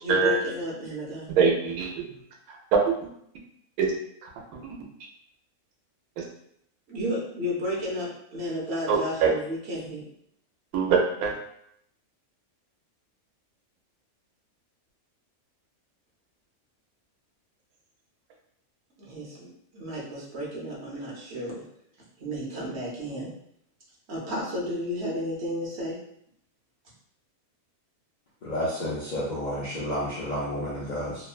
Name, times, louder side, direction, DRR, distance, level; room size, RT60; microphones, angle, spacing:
voice 1, 0.0-1.3 6.9-10.0 19.0-21.6 22.2-23.3 24.1-26.0, equal, 55° right, -4 dB, 1.0 m, -32 dB
voice 2, 1.3-2.0 2.7-2.9 3.8-3.9 4.5-4.6 6.2-6.3 8.9-9.3 10.7-11.3, right 5 dB, 90° right, 1 dB, 1.1 m, -23 dB
voice 3, 28.4-31.3, equal, 70° left, -6 dB, 0.4 m, -31 dB
2.9 x 2.1 x 2.3 m, 0.71 s
omnidirectional pair, 1.5 m